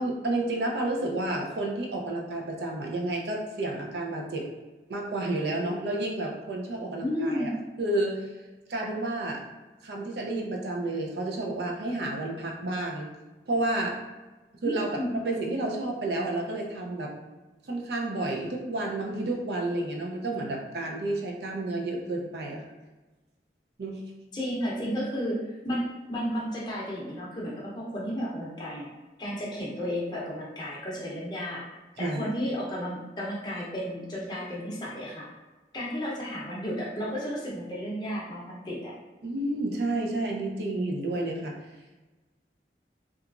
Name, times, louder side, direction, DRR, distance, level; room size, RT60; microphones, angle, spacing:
voice 1, 0.0-4.5 4.9-7.5 7.8-8.3 8.7-9.4 9.8-13.1 13.5-14.0 14.6-17.1 17.7-22.6 23.8-24.0 32.0-32.2 39.2-41.5, right 2 dB, 70° right, 0 dB, 0.5 m, -30 dB
voice 2, 7.0-7.6 14.6-15.1 24.3-28.9 29.2-31.6 32.0-35.3 35.7-38.9, equal, 25° left, -5 dB, 0.6 m, -33 dB
2.9 x 2.3 x 2.4 m, 1.2 s
head